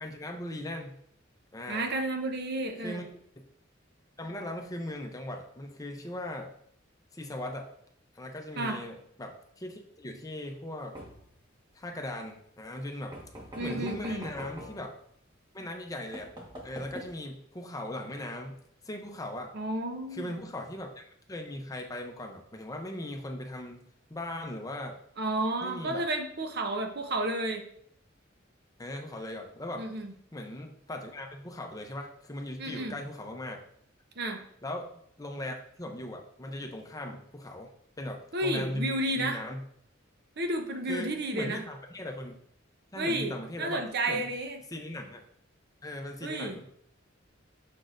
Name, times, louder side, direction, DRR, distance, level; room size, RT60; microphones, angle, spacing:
voice 1, 0.0-1.0 1.5-1.9 2.8-3.0 4.2-6.5 7.1-7.7 8.1-11.0 11.7-13.2 13.6-14.9 15.5-16.3 16.6-18.5 18.8-19.5 20.1-23.8 24.1-25.0 25.6-26.1 28.8-29.8 30.3-33.6 34.6-34.9 35.2-37.7 38.0-39.6 40.9-42.3 42.9-44.3 44.7-45.2 45.8-46.7, left 1 dB, 20° left, 3 dB, 0.7 m, -39 dB
voice 2, 1.7-3.0 8.6-8.8 13.6-14.2 19.5-20.3 25.2-27.7 29.8-30.1 32.6-33.0 34.2-34.4 38.3-39.4 40.4-41.6 43.0-43.3 43.6-44.6 46.2-46.6, right 1 dB, 55° right, 4 dB, 0.8 m, -31 dB
sound 1, 10.9-11.4 13.1-14.8 15.7-15.8 16.1-17.1, equal, 20° right, 1.4 m, -44 dB
6.3 x 6.0 x 2.6 m, 0.68 s
head